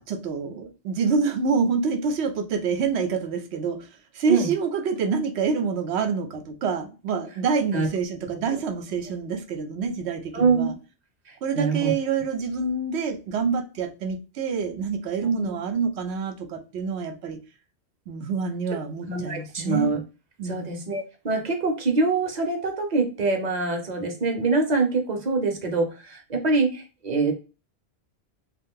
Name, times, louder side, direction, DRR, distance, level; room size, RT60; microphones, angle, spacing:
voice 1, 0.0-3.9 4.1-10.7 11.4-17.4 18.1-19.9 20.4-20.9, right 5 dB, 90° right, 0.9 m, -27 dB
voice 2, 10.3-10.7 11.5-11.9 15.3-15.5 19.1-20.0 20.4-27.3, right 3 dB, 45° right, 0.8 m, -24 dB
2.6 x 2.3 x 3.6 m
omnidirectional pair, 1.1 m